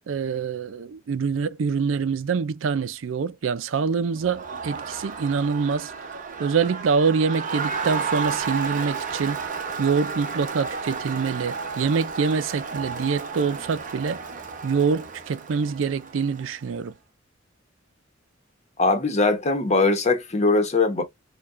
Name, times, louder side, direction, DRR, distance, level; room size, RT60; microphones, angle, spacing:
voice 1, 0.1-5.9 6.4-9.4 9.8-14.3 14.6-16.9, right 5 dB, 90° right, 0.4 m, -25 dB
Crowd, 4.1-16.7, right 5 dB, 45° right, 0.9 m, -32 dB
voice 2, 18.8-21.0, left 3 dB, 35° left, 0.9 m, -21 dB
4.7 x 2.3 x 2.5 m
head